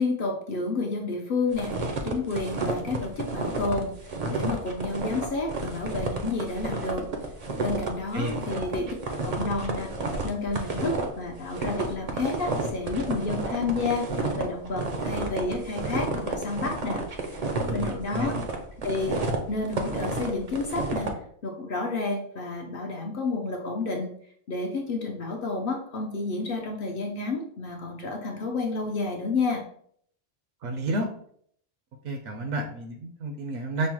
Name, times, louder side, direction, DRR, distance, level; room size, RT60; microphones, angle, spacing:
voice 1, 0.0-1.7 2.0-3.9 4.3-7.1 7.6-8.9 9.2-9.9 10.2-18.3 18.8-21.1 21.4-24.1 24.5-29.6, left 3 dB, 60° left, 1 dB, 0.6 m, -30 dB
sound 1, 1.5-21.1, right 3 dB, 55° right, 0.4 m, -31 dB
voice 2, 17.7-18.3 30.6-31.1 32.0-33.9, right 2 dB, 75° right, 4 dB, 0.9 m, -31 dB
5.3 x 2.0 x 2.9 m, 0.63 s
omnidirectional pair, 1.3 m